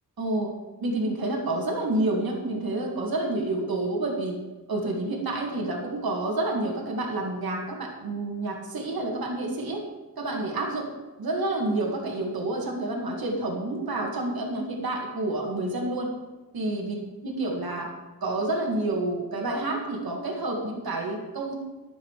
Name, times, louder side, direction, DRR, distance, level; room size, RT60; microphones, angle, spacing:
voice 1, 0.2-0.5 0.8-4.4 4.7-9.8 10.2-16.1 16.5-16.9 17.2-17.9 18.2-21.6, right 2 dB, 75° right, -1 dB, 2.3 m, -29 dB
11.0 x 8.1 x 4.9 m, 1.2 s
cardioid pair, 55°, 36 cm